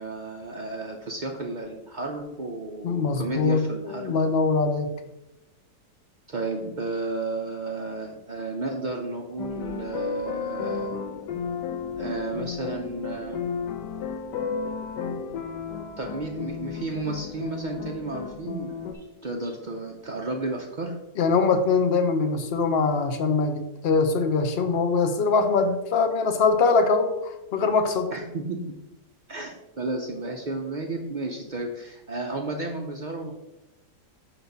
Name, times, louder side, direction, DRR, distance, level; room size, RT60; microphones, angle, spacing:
voice 1, 0.0-4.1 6.3-11.0 12.0-13.4 16.0-20.9 28.1-28.8 29.3-33.3, right 3 dB, 65° right, 1 dB, 0.4 m, -33 dB
voice 2, 2.8-4.9 21.2-28.1, left 4 dB, 55° left, 6 dB, 0.7 m, -23 dB
sound 1, 9.4-18.9, left 6 dB, 90° left, 1.3 m, -33 dB
5.6 x 4.4 x 5.2 m, 0.95 s
omnidirectional pair, 1.8 m